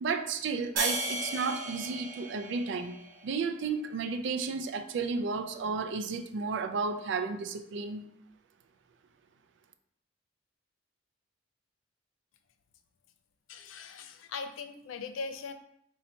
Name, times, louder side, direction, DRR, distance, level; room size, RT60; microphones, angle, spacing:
voice 1, 0.0-8.1, right 4 dB, 60° right, 7 dB, 0.3 m, -33 dB
sound 1, 0.8-3.4, right 2 dB, 45° right, 1.2 m, -35 dB
voice 2, 13.5-15.5, left 4 dB, 85° left, 7 dB, 0.4 m, -40 dB
2.8 x 2.7 x 4.2 m, 0.74 s
head